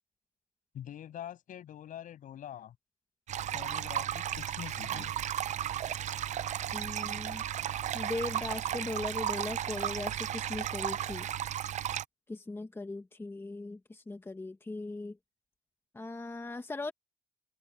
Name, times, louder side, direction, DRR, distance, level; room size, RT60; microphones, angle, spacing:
voice 1, 0.7-2.7 3.5-5.1, left 10 dB, 75° left, 8.0 m, -44 dB
sound 1, 3.3-12.0, right 11 dB, 60° right, 0.5 m, -34 dB
voice 2, 6.7-7.5 7.9-11.3 12.3-15.2 15.9-16.9, left 2 dB, 15° left, 1.7 m, -39 dB
open air
cardioid pair, 125°, 14 cm